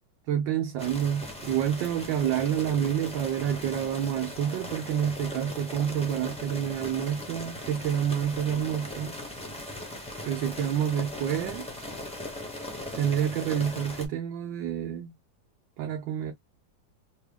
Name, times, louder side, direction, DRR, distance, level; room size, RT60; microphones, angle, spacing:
voice 1, 0.3-9.1 10.2-11.7 13.0-15.1 15.8-16.3, right 9 dB, 80° right, 1.4 m, -28 dB
sound 1, 0.8-14.1, left 1 dB, 10° left, 0.3 m, -39 dB
3.5 x 2.3 x 3.3 m
omnidirectional pair, 2.0 m